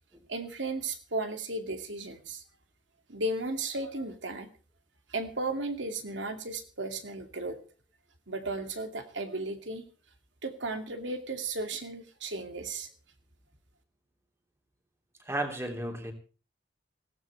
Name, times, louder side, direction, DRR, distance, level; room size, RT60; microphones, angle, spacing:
voice 1, 0.3-2.4 3.1-4.5 5.1-7.6 8.3-9.9 10.4-12.9, right 2 dB, 80° right, 6 dB, 2.5 m, -35 dB
voice 2, 15.2-16.1, right 1 dB, 15° right, 3 dB, 2.9 m, -33 dB
20.0 x 17.0 x 3.4 m, 0.35 s
head